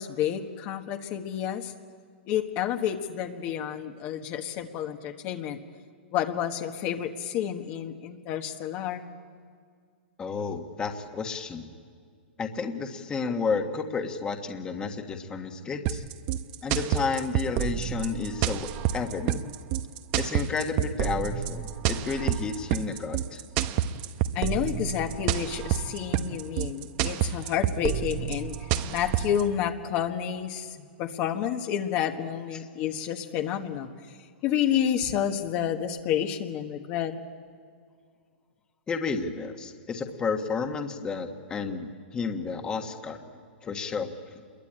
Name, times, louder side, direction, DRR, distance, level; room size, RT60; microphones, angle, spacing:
voice 1, 0.0-1.7 2.3-5.6 6.1-9.0 24.3-34.2 34.4-37.1, left 9 dB, 35° left, 4 dB, 1.4 m, -30 dB
voice 2, 10.2-11.7 12.4-16.0 16.6-19.4 20.2-23.4 32.5-32.6 38.9-43.2 43.6-44.4, left 5 dB, 15° left, 5 dB, 1.5 m, -31 dB
sound 1, 15.9-29.4, right 11 dB, 35° right, 0.9 m, -28 dB
27.5 x 22.5 x 8.8 m, 2.1 s
hypercardioid pair, 155°, 6 cm